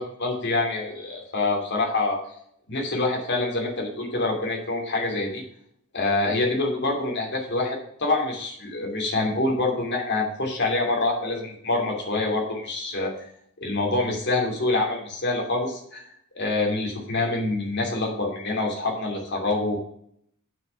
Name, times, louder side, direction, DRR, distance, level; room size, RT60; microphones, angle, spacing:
voice 1, 0.0-2.2 2.7-5.4 5.9-13.1 13.6-16.0 16.3-19.8, left 2 dB, 55° left, 1 dB, 2.8 m, -26 dB
7.3 x 6.4 x 5.6 m, 0.68 s
head